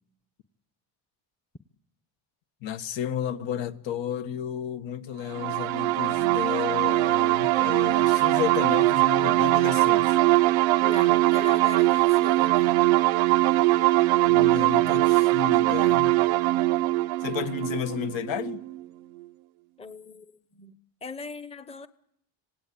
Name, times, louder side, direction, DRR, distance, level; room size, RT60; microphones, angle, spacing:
voice 1, 2.6-10.2 14.2-16.2 17.2-18.6, left 9 dB, 70° left, 1.7 m, -32 dB
sound 1, 5.3-18.8, right 18 dB, 90° right, 0.8 m, -22 dB
voice 2, 10.8-12.7 19.8-21.9, left 4 dB, 15° left, 0.9 m, -40 dB
27.0 x 18.0 x 8.6 m
cardioid pair, 130°, 47 cm